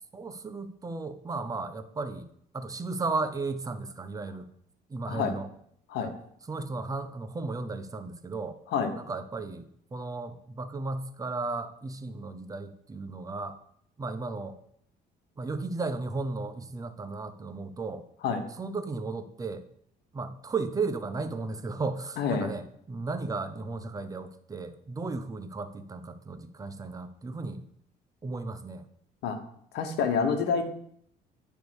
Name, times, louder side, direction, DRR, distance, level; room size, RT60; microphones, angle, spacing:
voice 1, 0.1-2.3 2.5-4.5 4.9-5.5 6.0-6.1 6.5-8.6 8.9-13.6 14.0-14.6 15.4-18.0 18.6-19.7 20.1-27.6 28.2-28.8, right 3 dB, 20° right, 9 dB, 0.7 m, -35 dB
voice 2, 22.2-22.5 29.2-29.4 29.7-30.6, left 6 dB, 80° left, 6 dB, 1.2 m, -27 dB
9.4 x 3.4 x 6.2 m, 0.67 s
cardioid pair, 110°, 17 cm